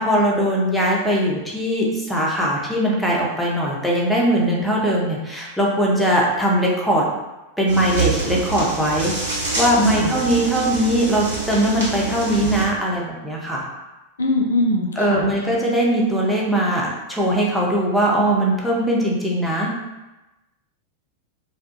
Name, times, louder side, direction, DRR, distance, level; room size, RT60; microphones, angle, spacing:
voice 1, 0.0-7.1 7.6-13.7 15.0-19.7, right 1 dB, ahead, -4 dB, 0.5 m, -20 dB
sound 1, 7.7-12.7, right 3 dB, 60° right, 0.9 m, -26 dB
voice 2, 9.8-10.2 14.2-15.3, left 1 dB, 70° left, 2 dB, 0.3 m, -21 dB
2.1 x 2.1 x 2.8 m, 1.0 s
figure-of-eight pair, 90°, 0 cm